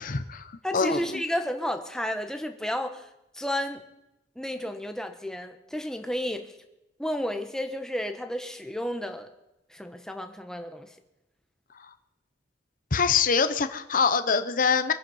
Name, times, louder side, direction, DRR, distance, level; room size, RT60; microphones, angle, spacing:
voice 1, 0.0-1.0 12.9-14.9, left 5 dB, 50° left, 10 dB, 0.8 m, -24 dB
voice 2, 0.6-3.1 3.3-3.8 4.4-6.5 7.0-9.3 9.7-10.9, equal, 5° left, 6 dB, 1.2 m, -32 dB
24.0 x 9.5 x 5.5 m, 0.92 s
head